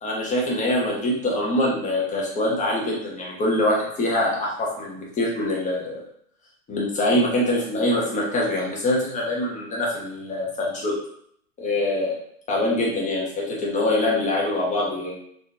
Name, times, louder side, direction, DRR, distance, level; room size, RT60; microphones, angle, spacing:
voice 1, 0.0-6.0 6.7-10.9 11.6-12.2 12.5-15.1, left 1 dB, 15° left, -3 dB, 1.1 m, -24 dB
3.8 x 3.1 x 2.6 m, 0.67 s
hypercardioid pair, 115°, 44 cm